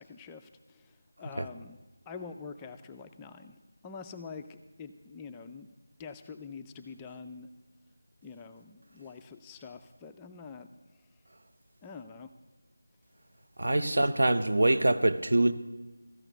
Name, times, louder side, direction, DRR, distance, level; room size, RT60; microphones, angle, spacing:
voice 1, 0.0-1.8 2.1-5.7 6.0-7.5 8.2-10.7 11.0-11.1 11.8-12.3 13.7-14.1, left 5 dB, 10° left, 0.3 m, -46 dB
voice 2, 13.6-15.5, right 1 dB, 65° right, 0.8 m, -24 dB
14.0 x 5.9 x 9.1 m
figure-of-eight pair, 175°, 0 cm